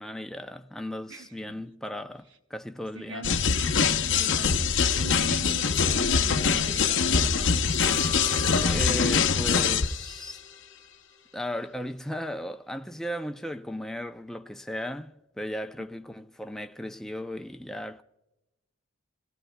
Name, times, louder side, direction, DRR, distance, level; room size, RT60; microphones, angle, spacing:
voice 1, 0.0-3.3 8.6-10.4 11.3-18.0, equal, ahead, 0.5 m, -36 dB
voice 2, 1.1-1.6 2.9-3.7 4.0-7.6 15.8-15.9, right 3 dB, 60° right, 0.9 m, -42 dB
sound 1, 3.2-10.1, left 6 dB, 65° left, 0.7 m, -24 dB
sound 2, 7.7-10.8 11.2-11.3, right 2 dB, 35° right, 0.8 m, -43 dB
28.0 x 17.0 x 2.3 m
head